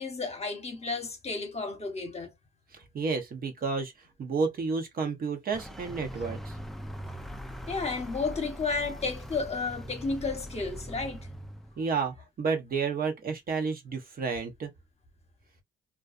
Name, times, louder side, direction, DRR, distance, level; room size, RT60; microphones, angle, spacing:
voice 1, 0.0-2.3 7.7-11.3, left 4 dB, 30° left, 0.9 m, -32 dB
voice 2, 2.7-3.9 4.2-6.5 11.8-14.7, right 4 dB, 50° right, 0.8 m, -31 dB
Vehicle, 5.5-11.9, equal, ahead, 0.4 m, -41 dB
2.4 x 2.2 x 2.4 m
cardioid pair, 90°, 20 cm